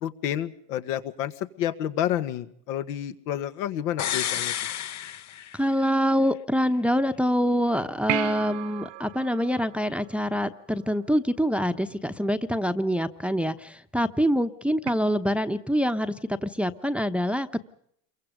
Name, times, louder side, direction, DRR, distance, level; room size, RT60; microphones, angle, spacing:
voice 1, 0.0-1.3 1.6-4.5, left 11 dB, 75° left, 10 dB, 1.9 m, -29 dB
sound 1, 4.0-5.9 6.2-6.3, left 11 dB, 35° left, 0.9 m, -31 dB
voice 2, 5.5-17.6, equal, 5° right, 11 dB, 0.9 m, -25 dB
sound 2, 8.1-10.8 14.9-15.0, right 19 dB, 60° right, 1.0 m, -34 dB
28.0 x 23.0 x 5.2 m, 0.68 s
supercardioid pair, 105°, 48 cm